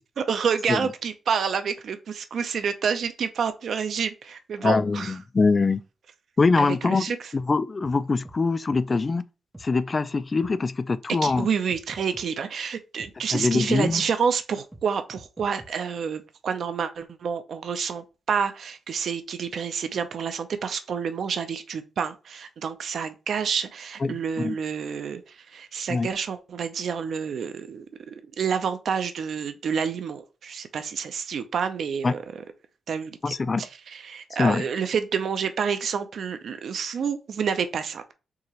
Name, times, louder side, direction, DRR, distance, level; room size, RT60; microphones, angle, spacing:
voice 1, 0.2-5.2 6.6-7.2 11.2-32.2 32.9-38.1, right 6 dB, 65° right, 0.6 m, -29 dB
voice 2, 4.6-5.8 6.4-9.2 9.6-11.5 13.3-14.0 24.0-24.6 25.9-26.1 32.0-32.1 33.2-33.6 34.4-34.7, left 4 dB, 30° left, 0.3 m, -23 dB
sound 1, 7.8-8.0 8.2-8.4 8.7-8.8 9.5-9.7 10.4-10.5 11.3-11.4 11.7-12.3 13.0-13.1 13.9-14.0 14.7-14.8 15.1-15.7, right 1 dB, 10° right, 0.7 m, -45 dB
4.7 x 2.9 x 2.9 m
wide cardioid pair, 130°, 0 cm